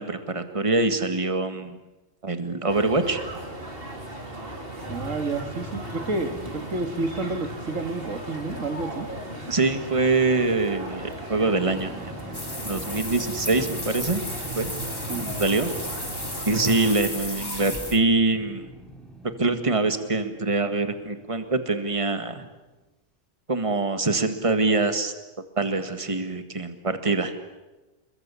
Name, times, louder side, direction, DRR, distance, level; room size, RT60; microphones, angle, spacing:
voice 1, 0.0-1.8 2.2-3.2 9.5-12.1 12.6-14.2 14.6-14.7 15.2-15.7 16.5-18.7 19.4-22.5 23.5-25.1 25.6-27.3, right 3 dB, 25° right, 8 dB, 1.9 m, -24 dB
sound 1, 2.7-16.9, right 1 dB, 45° right, 4.2 m, -37 dB
sound 2, 4.8-22.0, right 1 dB, ahead, 3.3 m, -45 dB
voice 2, 4.9-9.1 15.1-15.3, right 3 dB, 85° right, 7 dB, 2.4 m, -30 dB
sound 3, 12.3-18.0, left 1 dB, 20° left, 3.3 m, -34 dB
28.5 x 22.0 x 8.4 m, 1.1 s
omnidirectional pair, 1.3 m